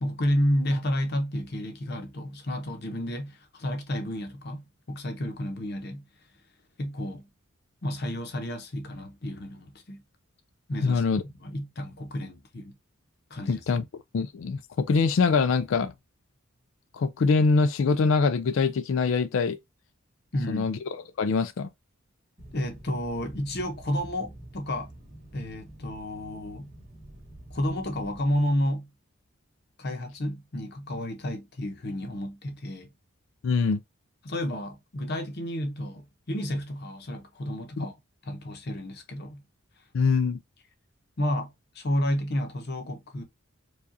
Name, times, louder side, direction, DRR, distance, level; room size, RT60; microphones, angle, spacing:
voice 1, 0.0-6.1 6.8-7.3 7.8-10.0 10.7-11.0 11.4-12.7 13.3-13.6 20.3-20.7 22.5-24.9 25.3-26.7 27.5-28.9 29.8-32.9 34.2-38.0 38.2-39.4 41.2-43.2, equal, 50° left, 0.8 m, -31 dB
voice 2, 10.8-11.2 13.5-13.8 14.1-15.9 16.9-19.6 20.5-21.7 33.4-33.8 37.8-37.9 39.9-40.4, left 4 dB, 65° left, 0.4 m, -24 dB
sound 1, 22.4-28.4, right 1 dB, 35° right, 1.8 m, -47 dB
4.8 x 2.4 x 2.6 m
head